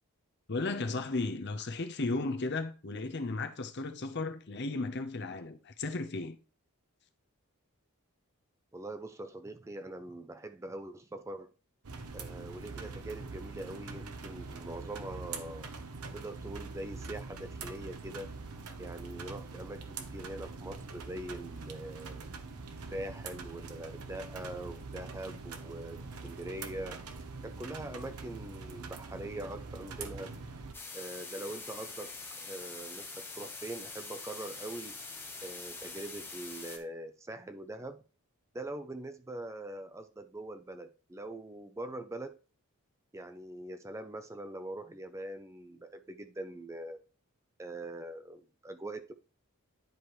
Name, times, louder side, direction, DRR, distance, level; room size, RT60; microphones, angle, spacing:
voice 1, 0.5-6.4, left 3 dB, 50° left, 0.8 m, -35 dB
voice 2, 8.7-11.5 12.1-15.7 16.1-18.3 18.8-22.3 22.9-27.0 27.4-30.3 30.9-32.1 32.4-35.0 35.4-38.0 38.5-42.4 43.1-47.0 47.6-49.1, right 1 dB, 15° right, 0.4 m, -43 dB
sound 1, 11.8-30.7, right 4 dB, 85° right, 1.0 m, -44 dB
sound 2, 30.7-36.8, left 3 dB, 10° left, 0.9 m, -44 dB
10.5 x 4.8 x 3.1 m
head